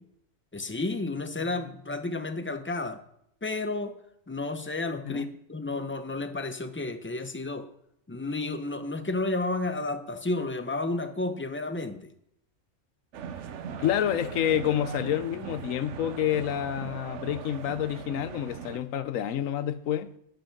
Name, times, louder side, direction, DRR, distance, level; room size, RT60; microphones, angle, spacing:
voice 1, 0.5-3.0 3.4-3.9 4.3-7.7 8.1-12.1, left 2 dB, 20° left, 9 dB, 0.3 m, -31 dB
sound 1, 13.1-18.8, right 7 dB, 65° right, 1.0 m, -40 dB
voice 2, 13.8-20.1, left 10 dB, 80° left, 14 dB, 1.1 m, -28 dB
10.0 x 5.3 x 5.8 m, 0.74 s
omnidirectional pair, 1.4 m